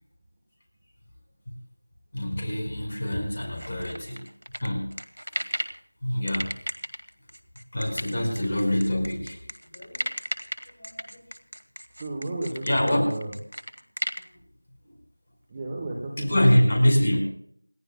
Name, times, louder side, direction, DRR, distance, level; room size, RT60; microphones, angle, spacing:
voice 1, 2.1-4.2 4.6-4.9 6.0-6.5 7.7-9.4 9.7-10.0 10.8-11.2 12.6-13.0 16.2-17.3, equal, 25° left, 1 dB, 4.8 m, -25 dB
sound 1, 3.6-5.8 6.3-14.2, equal, 80° right, 2.0 m, -34 dB
voice 2, 12.0-13.3 15.5-16.7, right 2 dB, 10° right, -1 dB, 1.2 m, -33 dB
29.0 x 12.0 x 2.2 m, 0.65 s
figure-of-eight pair, 175°, 0 cm